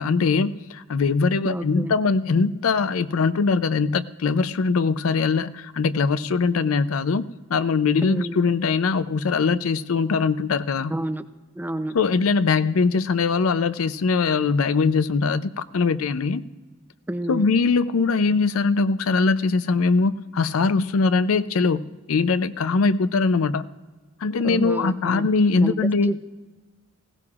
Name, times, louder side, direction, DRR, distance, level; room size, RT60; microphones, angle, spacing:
voice 1, 0.0-10.9 11.9-16.4 17.3-23.6 24.2-26.1, left 4 dB, 80° left, 14 dB, 0.5 m, -22 dB
voice 2, 1.4-2.0 8.0-8.4 10.9-11.2 11.5-12.0 17.1-17.5 24.4-25.3 25.6-26.2, right 1 dB, 10° right, 11 dB, 0.5 m, -30 dB
20.0 x 16.5 x 2.4 m, 1.3 s
head